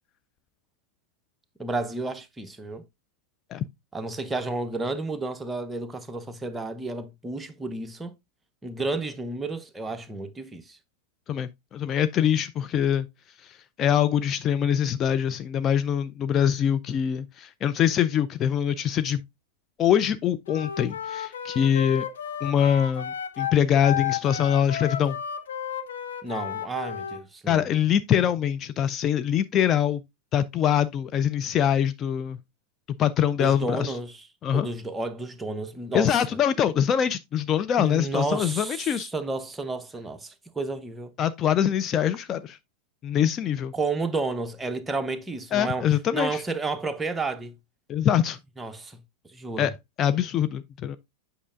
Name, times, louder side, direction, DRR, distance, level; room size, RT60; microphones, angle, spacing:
voice 1, 1.6-2.8 3.9-8.1 8.6-10.8 26.2-27.7 33.4-34.3 34.5-36.2 37.8-41.1 43.7-45.9 46.1-47.5 48.6-49.7, right 3 dB, 10° right, 0.8 m, -31 dB
voice 2, 11.3-13.1 13.4-19.2 19.8-22.0 22.4-25.2 27.5-30.0 30.3-32.4 33.0-34.0 34.4-34.7 35.9-39.1 41.2-42.6 43.0-43.7 45.5-46.4 47.9-48.4 49.6-49.7 50.0-51.0, left 9 dB, 30° left, 0.4 m, -24 dB
Wind instrument woodwind instrument, 20.5-27.2, left 9 dB, 65° left, 0.8 m, -33 dB
8.3 x 5.4 x 2.5 m
figure-of-eight pair, 90°, 0 cm